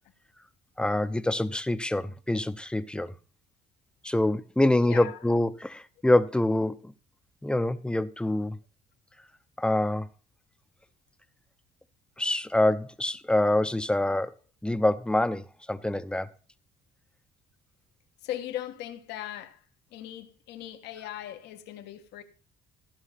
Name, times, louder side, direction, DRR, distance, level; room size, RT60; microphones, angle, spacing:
voice 1, 0.8-3.1 4.0-6.9 7.4-8.6 9.6-10.1 12.2-14.3 14.6-16.3, left 1 dB, 5° left, 0.7 m, -26 dB
voice 2, 4.8-5.3 18.2-19.6 19.9-22.2, left 12 dB, 85° left, 1.4 m, -39 dB
15.0 x 5.7 x 5.8 m
cardioid pair, 110°, 17 cm